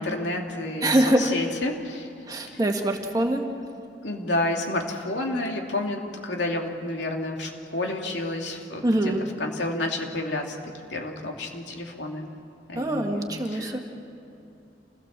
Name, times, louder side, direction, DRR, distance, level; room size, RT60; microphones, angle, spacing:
voice 1, 0.0-2.1 4.0-9.1 9.4-10.6 10.9-12.3 12.7-13.8, left 2 dB, 90° left, 1 dB, 2.9 m, -30 dB
voice 2, 0.8-1.3 2.3-3.5 8.8-9.2 12.8-13.8, right 1 dB, 20° right, 2 dB, 1.9 m, -24 dB
28.0 x 17.0 x 7.5 m, 2.8 s
head